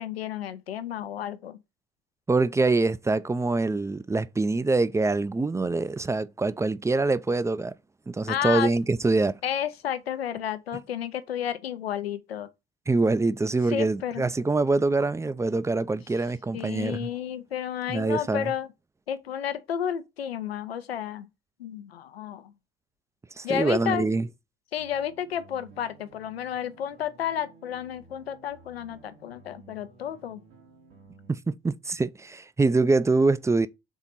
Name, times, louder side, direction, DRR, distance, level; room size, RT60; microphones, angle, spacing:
voice 1, 0.0-1.6 8.3-8.7 9.4-12.5 13.7-14.2 16.5-18.7 19.1-21.3 21.6-22.5 23.4-24.1 24.7-30.4, left 9 dB, 85° left, 0.5 m, -31 dB
voice 2, 2.3-7.7 8.1-9.4 12.9-17.1 17.9-18.5 23.4-24.3 31.3-33.7, right 3 dB, 10° right, 0.4 m, -24 dB
sound 1, 24.7-31.3, right 3 dB, 75° right, 2.4 m, -54 dB
5.5 x 4.0 x 5.7 m
figure-of-eight pair, 50°, 30 cm